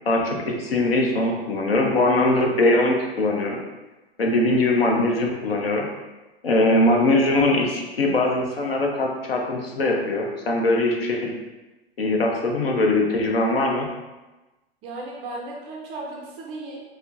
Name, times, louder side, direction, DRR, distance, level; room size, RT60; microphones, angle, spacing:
voice 1, 0.1-3.6 4.2-5.8 6.4-11.3 12.0-13.9, left 2 dB, 75° left, 1 dB, 0.7 m, -21 dB
voice 2, 14.8-16.8, right 2 dB, 20° right, -2 dB, 0.4 m, -35 dB
4.2 x 2.0 x 2.5 m, 1.1 s
figure-of-eight pair, 100°, 30 cm